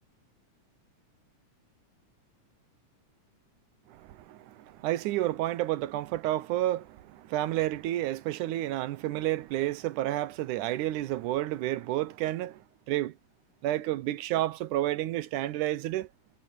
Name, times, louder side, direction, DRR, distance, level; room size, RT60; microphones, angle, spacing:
voice 1, 3.9-12.6 12.9-13.1 13.6-16.1, right 14 dB, 80° right, 2.2 m, -30 dB
omnidirectional pair, 3.6 m